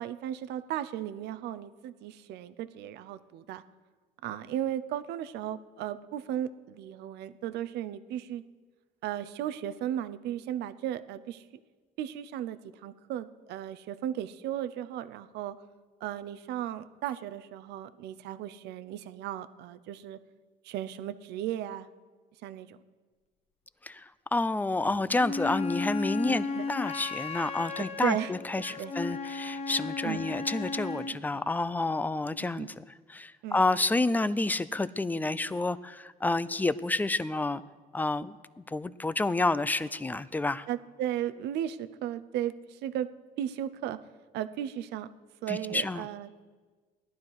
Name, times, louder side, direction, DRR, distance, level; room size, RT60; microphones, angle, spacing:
voice 1, 0.0-3.6 4.2-8.4 9.0-11.4 12.0-15.5 16.0-20.2 20.6-21.9 22.4-22.8 24.8-25.0 26.3-26.6 27.8-28.9 30.0-30.3 31.3-31.4 32.4-32.7 33.4-33.6 40.7-43.1 43.4-44.0 44.3-45.1 45.4-46.3, right 11 dB, 80° right, 12 dB, 0.7 m, -35 dB
voice 2, 23.8-37.6 37.9-40.7 45.5-46.1, left 2 dB, 10° left, 16 dB, 0.4 m, -29 dB
Wind instrument woodwind instrument, 25.2-31.2, left 3 dB, 35° left, 1.3 m, -34 dB
17.5 x 11.5 x 4.8 m, 1.4 s
cardioid pair, 110°, 17 cm